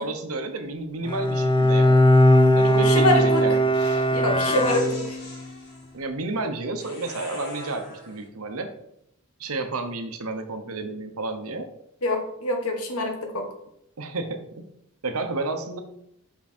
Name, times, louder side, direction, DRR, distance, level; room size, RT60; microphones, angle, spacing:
voice 1, 0.0-2.0 2.5-3.6 5.9-8.7 9.4-11.7 14.0-14.6 15.0-15.8, right 3 dB, 80° right, 7 dB, 1.0 m, -31 dB
Bowed string instrument, 1.0-5.4, equal, 25° left, 0.4 m, -19 dB
sound 1, 2.5-4.1 4.5-5.9 6.8-8.2, right 1 dB, 50° left, 2.4 m, -38 dB
voice 2, 2.8-3.5 4.1-5.2 12.0-13.5, left 1 dB, 80° left, 4 dB, 1.4 m, -25 dB
6.0 x 5.6 x 4.3 m, 0.77 s
head